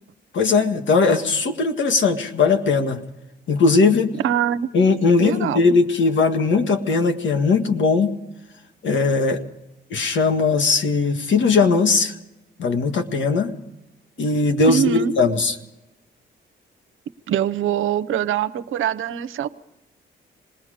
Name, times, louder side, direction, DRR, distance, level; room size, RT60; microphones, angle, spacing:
voice 1, 0.3-3.0 3.5-4.1 4.7-8.1 8.8-9.4 9.9-12.2 12.6-13.5 14.2-15.6, left 4 dB, 70° left, 6 dB, 1.9 m, -19 dB
voice 2, 4.2-4.7 5.2-5.7 14.7-15.1 17.3-19.5, right 9 dB, 80° right, 13 dB, 0.8 m, -23 dB
27.0 x 19.5 x 5.1 m, 0.97 s
cardioid pair, 80°, 20 cm